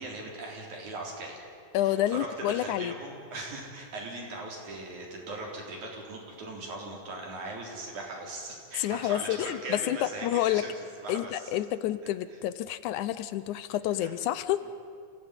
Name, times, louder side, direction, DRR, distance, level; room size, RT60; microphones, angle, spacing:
voice 1, 0.0-1.4 1.8-10.7 11.0-11.4 14.0-14.1 14.6-14.7, right 2 dB, 70° right, -1 dB, 5.3 m, -39 dB
voice 2, 1.7-2.9 8.8-10.6 11.1-14.6, left 12 dB, 80° left, 14 dB, 2.1 m, -29 dB
28.0 x 16.5 x 9.8 m, 2.3 s
omnidirectional pair, 3.6 m